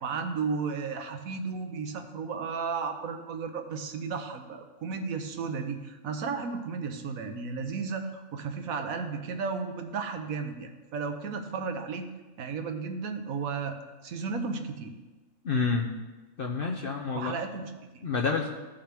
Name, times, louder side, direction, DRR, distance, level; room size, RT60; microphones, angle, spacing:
voice 1, 0.0-12.1 12.4-14.9 17.1-18.1, right 5 dB, 85° right, 6 dB, 1.3 m, -34 dB
voice 2, 15.4-15.9 16.4-17.4 18.0-18.5, left 4 dB, 50° left, 1 dB, 0.7 m, -28 dB
15.0 x 5.6 x 3.4 m, 1.2 s
omnidirectional pair, 1.4 m